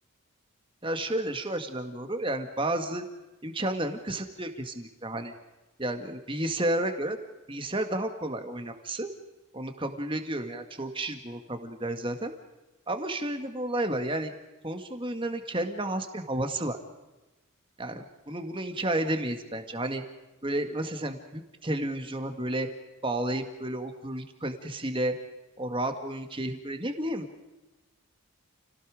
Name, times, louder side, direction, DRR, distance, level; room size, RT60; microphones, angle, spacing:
voice 1, 0.8-3.0 3.4-5.3 5.8-7.2 7.5-9.1 9.5-12.3 12.9-14.3 14.6-16.8 17.8-20.0 20.4-22.7 23.0-25.1 25.6-27.3, right 1 dB, 25° right, 6 dB, 2.0 m, -31 dB
30.0 x 18.0 x 5.1 m, 1.0 s
head